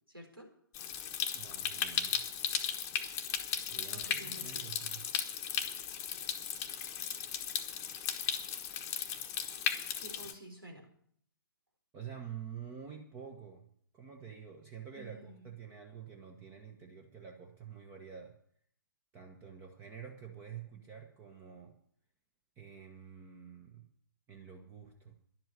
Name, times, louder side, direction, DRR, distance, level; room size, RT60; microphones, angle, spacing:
voice 1, 0.1-0.5 3.9-4.6 9.9-10.9 14.9-15.4, right 1 dB, 90° right, 2 dB, 4.3 m, -50 dB
Stream, 0.7-10.3, left 8 dB, 25° left, 1.1 m, -36 dB
voice 2, 1.3-2.4 3.6-5.0 11.9-13.6 13.9-18.4 19.1-21.8 22.6-23.8 24.3-25.1, right 8 dB, 20° right, 2 dB, 1.3 m, -48 dB
11.5 x 7.7 x 9.9 m, 0.64 s
figure-of-eight pair, 125°, 12 cm